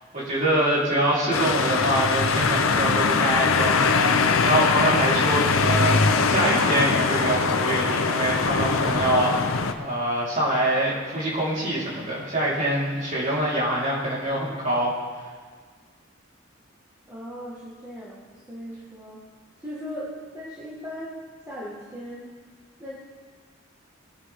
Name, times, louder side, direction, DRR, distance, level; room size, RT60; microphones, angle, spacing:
voice 1, 0.1-3.7 4.4-15.0, right 1 dB, 40° right, -8 dB, 4.4 m, -25 dB
sound 1, 1.3-9.7, left 4 dB, 90° left, 0.8 m, -22 dB
voice 2, 17.1-19.2 19.6-22.3 22.8-22.9, equal, 15° right, -8 dB, 1.8 m, -38 dB
20.5 x 9.9 x 3.8 m, 1.6 s
head